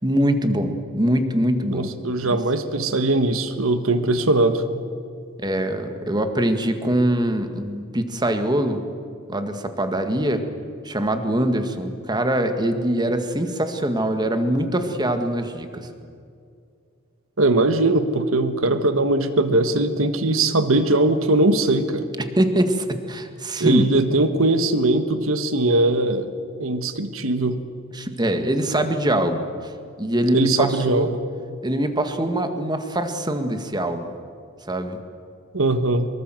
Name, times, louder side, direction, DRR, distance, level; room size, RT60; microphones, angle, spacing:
voice 1, 0.0-1.9 2.3-2.4 5.4-8.8 9.3-10.4 10.8-15.9 22.2-23.9 27.9-29.7 30.0-31.1 31.6-34.1 34.7-35.0, right 1 dB, 20° right, 7 dB, 1.8 m, -23 dB
voice 2, 1.7-4.6 17.4-22.1 23.6-26.3 26.6-27.6 30.3-31.2 35.5-36.1, right 2 dB, 85° right, 10 dB, 1.5 m, -20 dB
24.5 x 23.0 x 7.7 m, 2.3 s
head